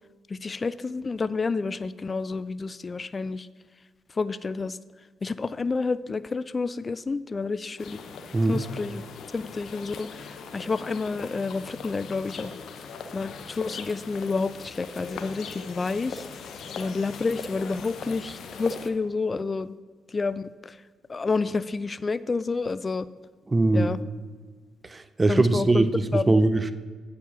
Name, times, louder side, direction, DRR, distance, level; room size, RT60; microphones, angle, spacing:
voice 1, 0.3-3.5 4.2-4.8 5.2-8.0 8.5-9.0 9.3-12.5 13.1-16.3 16.8-19.7 20.1-20.8 21.1-23.1 23.7-24.0 25.3-25.9 26.1-26.3, left 4 dB, 35° left, 16 dB, 0.3 m, -29 dB
sound 1, 7.8-18.9, left 5 dB, 70° left, 0.7 m, -40 dB
voice 2, 23.5-23.9 24.8-26.7, right 2 dB, 30° right, 12 dB, 0.5 m, -22 dB
8.6 x 4.8 x 6.0 m, 1.5 s
supercardioid pair, 60°, 0 cm